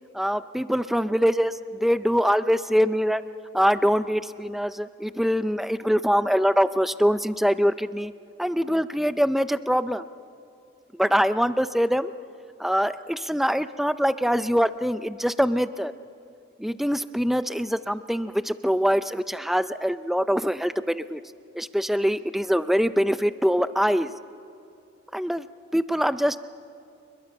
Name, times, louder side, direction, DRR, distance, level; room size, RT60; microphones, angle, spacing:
voice 1, 0.1-1.5 1.8-3.2 3.5-8.1 8.4-10.0 10.9-12.1 12.6-15.9 16.6-21.2 21.6-24.1 25.1-25.5 25.7-26.4, equal, ahead, 12 dB, 0.4 m, -23 dB
28.5 x 22.0 x 5.4 m, 2.7 s
head